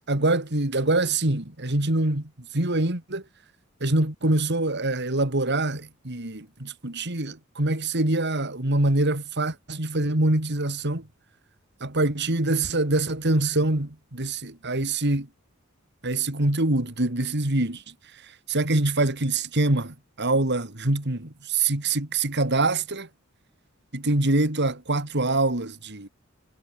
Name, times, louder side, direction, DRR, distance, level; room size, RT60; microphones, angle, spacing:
voice 1, 0.0-3.2 3.8-11.1 11.8-15.3 16.0-17.8 18.5-23.1 23.9-26.1, right 2 dB, 55° right, 3.1 m, -25 dB
head